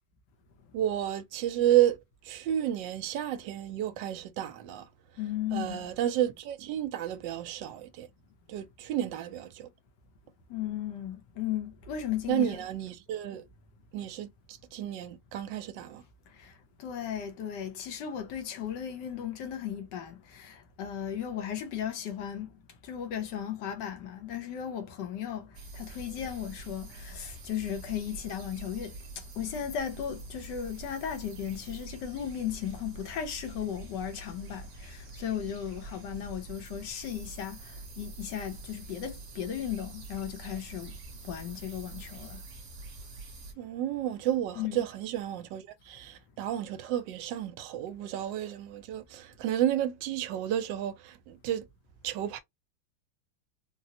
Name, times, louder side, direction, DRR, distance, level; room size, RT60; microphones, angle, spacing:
voice 1, 0.7-2.0 2.2-4.9 5.5-8.1 8.5-9.7 12.3-13.4 13.9-16.0 43.6-51.7 52.0-52.4, right 11 dB, 75° right, 1.2 m, -31 dB
voice 2, 5.2-5.9 10.5-12.6 16.8-22.5 22.8-25.5 25.7-28.9 29.4-40.9 41.2-42.4 44.6-44.8, left 9 dB, 70° left, 1.4 m, -36 dB
sound 1, 25.5-43.5, right 2 dB, 50° right, 1.1 m, -46 dB
4.0 x 2.0 x 2.7 m
omnidirectional pair, 2.1 m